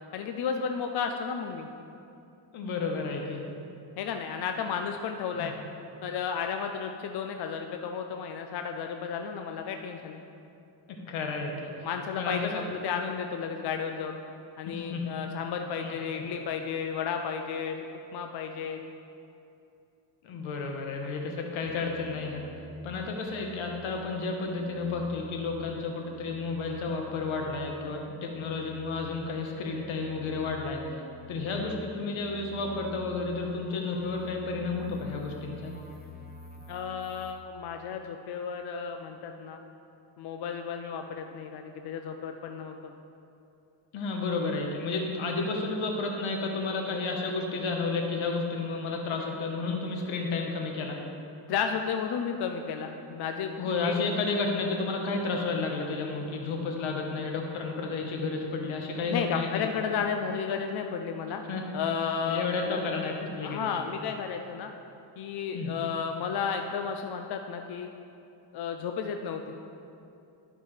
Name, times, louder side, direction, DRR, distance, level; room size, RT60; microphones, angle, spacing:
voice 1, 0.1-1.7 4.0-5.5 6.0-10.2 11.8-14.2 14.6-17.9 18.1-18.8 36.7-39.6 40.2-42.9 51.5-53.5 53.8-54.1 59.1-61.4 61.7-62.8 63.4-64.7 65.2-67.9 68.5-69.4, left 6 dB, 55° left, 5 dB, 0.5 m, -33 dB
voice 2, 2.5-3.4 5.4-5.5 10.9-11.7 12.2-12.6 14.7-15.3 15.8-16.2 20.2-22.4 22.8-31.0 31.3-35.7 43.9-51.0 53.6-59.7 61.5-61.6 62.2-63.7 65.5-65.7, left 3 dB, 80° left, 1 dB, 1.2 m, -32 dB
sound 1, 21.7-23.9 24.2-27.7 28.0-37.3, left 1 dB, 20° left, 0.7 m, -49 dB
12.0 x 5.5 x 3.2 m, 2.7 s
cardioid pair, 115°, 47 cm